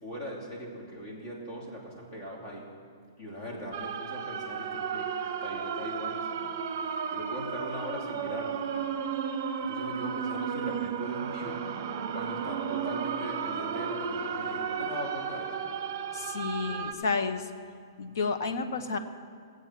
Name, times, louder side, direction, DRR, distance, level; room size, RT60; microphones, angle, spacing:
voice 1, 0.0-2.6 3.2-6.5 7.1-8.7 9.7-11.6 12.1-15.6, equal, 35° left, -2 dB, 2.8 m, -40 dB
sound 1, 3.7-16.9, right 6 dB, 40° right, 0.8 m, -33 dB
voice 2, 16.1-17.5 18.0-19.0, left 4 dB, 65° left, 8 dB, 1.0 m, -31 dB
16.0 x 7.9 x 5.8 m, 2.1 s
hypercardioid pair, 170°, 2 cm